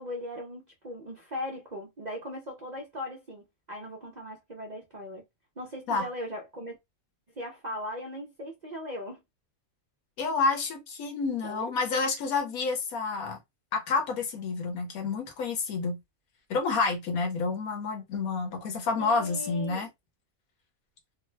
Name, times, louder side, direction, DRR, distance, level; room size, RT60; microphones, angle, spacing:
voice 1, 0.0-5.3 5.6-6.8 7.4-9.2 11.4-11.7 19.0-19.9, left 1 dB, 45° right, 0.6 m, -39 dB
voice 2, 10.2-13.4 13.7-16.0 16.5-19.9, left 4 dB, 75° left, 1.4 m, -29 dB
3.2 x 2.0 x 3.2 m
omnidirectional pair, 1.5 m